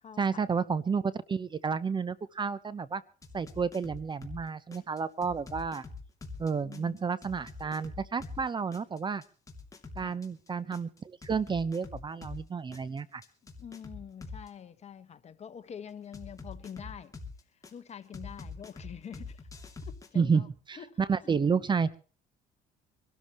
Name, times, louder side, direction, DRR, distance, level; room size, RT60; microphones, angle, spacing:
voice 1, 0.2-3.0 3.3-5.8 6.4-9.2 10.0-13.2 20.1-22.0, right 5 dB, 25° right, 0.8 m, -31 dB
sound 1, 3.2-4.4 4.7-8.4 8.7-12.4 12.7-14.5 16.1-17.7 18.1-20.1, left 4 dB, 20° left, 2.8 m, -44 dB
voice 2, 6.6-7.0 10.0-10.2 13.6-17.1 17.7-19.4 19.9-20.5 20.8-21.0, left 8 dB, 40° left, 1.5 m, -45 dB
25.0 x 13.0 x 3.1 m
cardioid pair, 110°, 17 cm